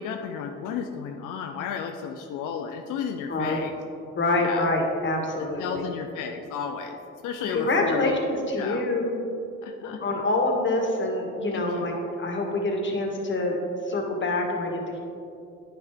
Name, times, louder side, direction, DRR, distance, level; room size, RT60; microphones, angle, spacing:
voice 1, 0.0-3.7 4.4-4.7 5.6-7.0 7.2-8.2 8.6-8.8 9.6-10.0 11.5-11.9, left 7 dB, 90° left, 4 dB, 0.5 m, -33 dB
voice 2, 3.3-3.6 4.1-5.8 7.5-9.2 10.0-13.6 13.9-15.0, left 2 dB, 40° left, 1 dB, 1.5 m, -26 dB
9.5 x 5.7 x 3.5 m, 2.5 s
cardioid pair, 90°, 30 cm